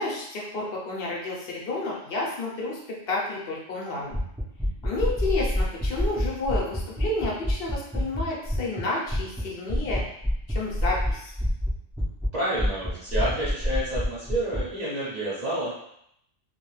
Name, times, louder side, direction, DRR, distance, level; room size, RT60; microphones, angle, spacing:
voice 1, 0.0-4.2 4.8-10.0 10.5-11.3, left 2 dB, 55° left, -3 dB, 0.8 m, -30 dB
sound 1, 4.1-8.8 9.1-9.4 9.7-12.3 12.6-14.6, equal, 5° right, 0.4 m, -26 dB
voice 2, 12.3-15.8, right 1 dB, 40° right, -9 dB, 0.8 m, -29 dB
2.3 x 2.3 x 3.1 m, 0.74 s
omnidirectional pair, 1.3 m